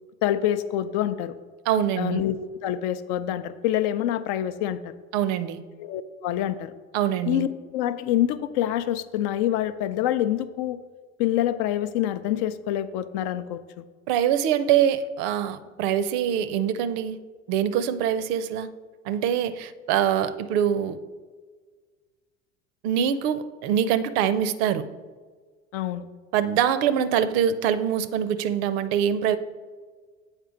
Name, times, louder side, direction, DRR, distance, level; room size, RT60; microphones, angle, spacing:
voice 1, 0.2-1.3 2.0-2.4 2.6-4.9 5.8-6.7 7.2-10.8 11.2-13.8 25.7-26.1, left 12 dB, 60° left, 0.5 m, -26 dB
voice 2, 1.7-2.2 5.1-5.6 6.9-7.5 14.1-17.2 17.5-18.7 19.1-21.0 22.8-24.9 26.3-29.4, right 9 dB, 60° right, 0.5 m, -24 dB
8.0 x 4.4 x 3.8 m
hypercardioid pair, 75°, 36 cm